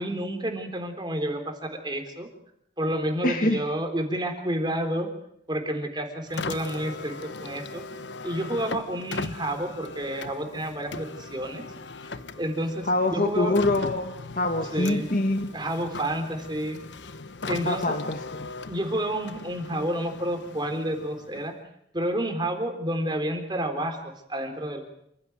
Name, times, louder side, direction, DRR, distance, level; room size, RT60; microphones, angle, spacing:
voice 1, 0.0-2.3 2.8-5.1 5.5-7.8 8.2-11.6 12.4-13.6 14.7-15.1 15.5-16.8 17.5-18.0 18.7-21.5 21.9-24.9, right 1 dB, 25° right, 5 dB, 3.9 m, -30 dB
voice 2, 3.2-3.6 12.8-15.5 17.7-18.5, left 2 dB, 50° left, 5 dB, 1.7 m, -25 dB
Car, 6.3-21.7, left 3 dB, 85° left, 1.1 m, -39 dB
28.0 x 16.0 x 9.5 m, 0.77 s
head